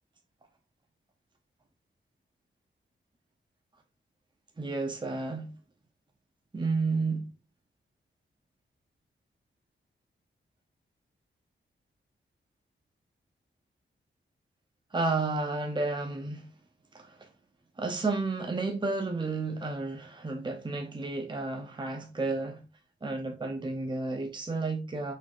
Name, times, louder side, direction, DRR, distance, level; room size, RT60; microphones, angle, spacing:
voice 1, 4.6-5.5 6.5-7.2 14.9-16.5 16.9-17.3 17.8-22.6 23.0-25.1, right 3 dB, 20° right, 0.8 m, -31 dB
4.5 x 4.3 x 2.5 m
cardioid pair, 65°, 21 cm